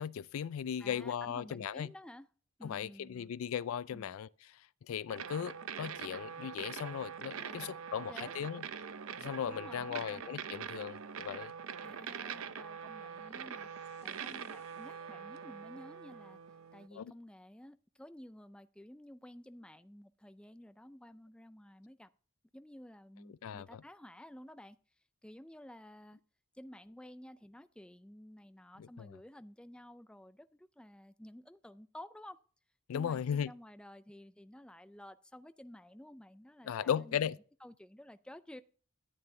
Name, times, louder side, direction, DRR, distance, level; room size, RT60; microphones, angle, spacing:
voice 1, 0.0-1.9 2.6-4.3 4.9-8.6 9.2-11.5 16.9-17.1 23.4-23.8 28.8-29.1 32.9-33.5 36.7-37.4, left 8 dB, 85° left, 0.3 m, -37 dB
voice 2, 0.8-2.3 2.6-3.3 3.9-4.2 7.3-8.3 9.5-10.2 11.8-13.7 14.0-16.4 16.7-22.1 22.5-24.8 25.2-26.2 26.5-32.4 32.9-37.3 37.6-38.6, left 1 dB, 5° left, 0.3 m, -52 dB
sound 1, 5.1-16.9, right 7 dB, 85° right, 0.6 m, -44 dB
sound 2, 8.2-16.9, left 3 dB, 30° left, 4.6 m, -68 dB
13.0 x 8.9 x 2.7 m
head